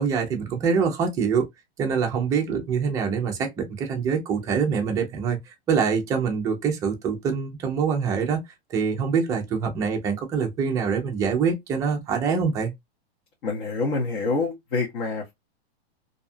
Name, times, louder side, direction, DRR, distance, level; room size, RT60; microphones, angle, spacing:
voice 1, 0.0-1.5 1.8-8.4 8.7-12.7, right 6 dB, 10° right, 0.3 m, -25 dB
voice 2, 13.4-15.3, left 3 dB, 55° left, 1.1 m, -26 dB
2.7 x 2.2 x 2.5 m
supercardioid pair, 145°, 32 cm